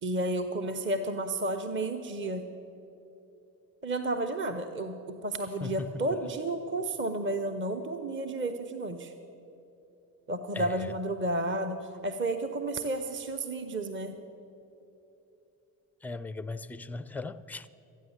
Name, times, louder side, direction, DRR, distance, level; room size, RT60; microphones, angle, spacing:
voice 1, 0.0-2.5 3.8-9.1 10.3-14.2, right 1 dB, 25° right, 6 dB, 0.8 m, -32 dB
voice 2, 5.6-6.0 10.5-10.9 16.0-17.7, left 3 dB, 5° left, 15 dB, 0.3 m, -38 dB
14.0 x 9.1 x 7.2 m, 2.9 s
hypercardioid pair, 60°, 44 cm